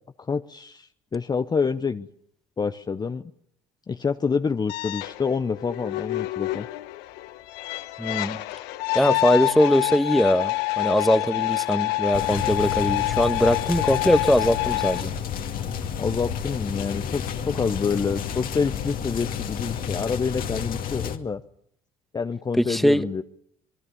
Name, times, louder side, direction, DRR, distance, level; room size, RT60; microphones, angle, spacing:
voice 1, 0.2-2.1 2.6-3.3 3.9-6.7 16.0-21.4 22.1-23.2, left 5 dB, 25° left, 9 dB, 0.9 m, -27 dB
sound 1, 4.7-15.0, left 20 dB, 75° left, 1.1 m, -27 dB
voice 2, 8.0-8.4 8.9-15.1 22.6-23.2, equal, ahead, 11 dB, 1.4 m, -21 dB
sound 2, 12.1-21.2, left 8 dB, 55° left, 2.3 m, -31 dB
sound 3, 14.1-20.2, left 2 dB, 80° right, 5.2 m, -47 dB
26.5 x 20.5 x 7.1 m, 0.70 s
supercardioid pair, 80°, 17 cm